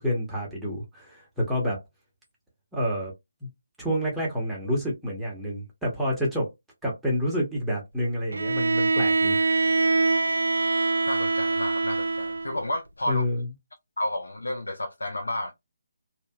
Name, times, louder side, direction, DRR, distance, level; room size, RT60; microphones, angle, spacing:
voice 1, 0.0-1.8 2.7-3.1 3.4-3.5 3.8-6.5 6.8-9.4 13.1-13.5, equal, 5° right, 0.9 m, -28 dB
Bowed string instrument, 8.3-12.6, right 3 dB, 70° right, 0.4 m, -24 dB
voice 2, 11.1-13.2 14.0-15.5, left 1 dB, 75° left, 0.5 m, -31 dB
2.7 x 2.5 x 2.2 m
figure-of-eight pair, 150°, 0 cm